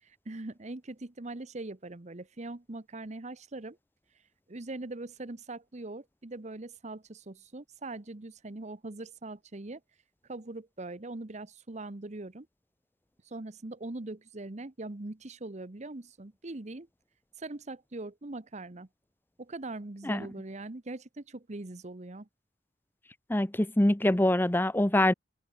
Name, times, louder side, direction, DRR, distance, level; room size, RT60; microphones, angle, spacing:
voice 1, 0.0-3.8 4.5-9.8 10.3-12.5 13.2-16.9 17.4-18.9 19.4-22.3, right 2 dB, 40° right, 1.0 m, -41 dB
voice 2, 23.3-25.1, left 1 dB, 10° left, 0.8 m, -24 dB
head